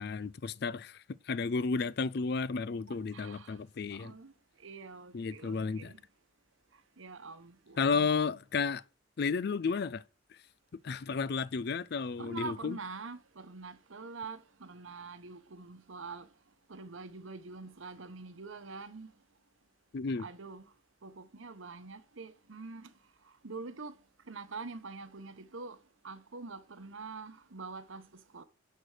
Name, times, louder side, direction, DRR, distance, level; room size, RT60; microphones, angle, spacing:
voice 1, 0.0-4.1 5.1-5.9 7.8-8.8 9.2-10.0 10.8-12.8 19.9-20.3, left 5 dB, 50° left, 0.4 m, -32 dB
voice 2, 2.9-3.6 3.9-4.3 4.6-6.0 7.0-8.1 12.2-16.3 16.7-19.1 20.2-20.7 21.0-22.9 23.4-24.0 24.3-25.8 26.0-28.4, right 4 dB, 80° right, 1.0 m, -45 dB
11.0 x 4.6 x 6.5 m
head